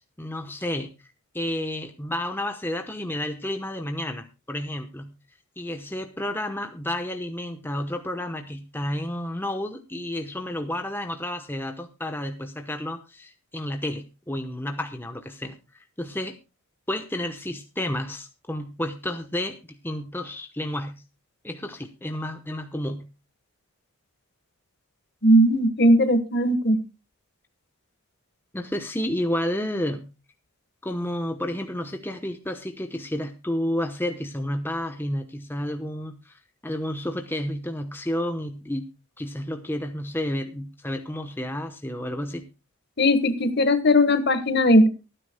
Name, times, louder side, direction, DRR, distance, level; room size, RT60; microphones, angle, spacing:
voice 1, 0.2-0.9 1.3-5.1 5.6-16.4 16.9-21.0 21.4-23.1 28.5-30.1 30.8-38.9 39.2-42.5, left 1 dB, 10° left, 6 dB, 0.9 m, -31 dB
voice 2, 25.2-26.8 43.0-44.9, equal, 45° left, 11 dB, 1.4 m, -18 dB
23.5 x 9.9 x 2.2 m, 0.29 s
head